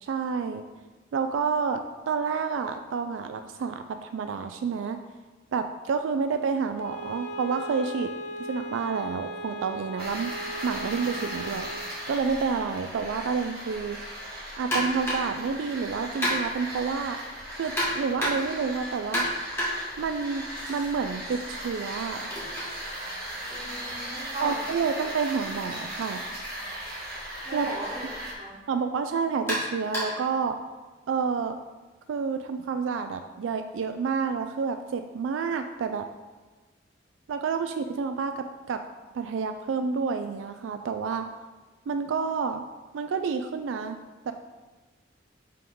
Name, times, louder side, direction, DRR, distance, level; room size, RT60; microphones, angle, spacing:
voice 1, 0.0-0.6 1.1-5.0 5.5-8.1 8.5-10.4 10.6-11.7 12.1-14.0 14.6-17.2 17.6-19.2 20.0-22.3 24.4-26.2 27.5-27.7 28.7-30.6 31.1-31.6 32.1-36.1 37.3-38.8 39.1-41.3 41.9-42.6 42.9-44.0 44.3-44.4, right 5 dB, 85° right, 8 dB, 0.3 m, -29 dB
Bowed string instrument, 6.7-11.9, equal, 65° left, 1.0 m, -38 dB
sound 1, 10.0-28.3, right 1 dB, 50° right, 1.3 m, -38 dB
sound 2, 14.7-15.4 16.2-16.7 17.8-18.6 19.1-20.9 21.2-25.1 26.2-26.3 26.8-26.9 27.8-28.0 29.5-30.3, equal, 15° left, 1.7 m, -32 dB
voice 2, 23.5-24.6 27.4-28.6, right 1 dB, 30° right, -6 dB, 1.7 m, -37 dB
5.6 x 3.6 x 5.4 m, 1.3 s
head